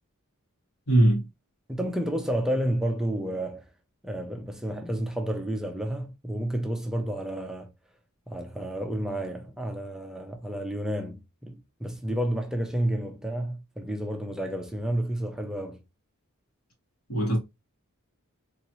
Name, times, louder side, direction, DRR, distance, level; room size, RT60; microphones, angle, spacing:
voice 1, 0.9-1.3 17.1-17.4, right 1 dB, 90° left, 2.3 m, -20 dB
voice 2, 1.7-3.7 4.0-7.7 8.3-15.8, right 1 dB, ahead, 0.6 m, -30 dB
3.8 x 2.9 x 2.9 m
head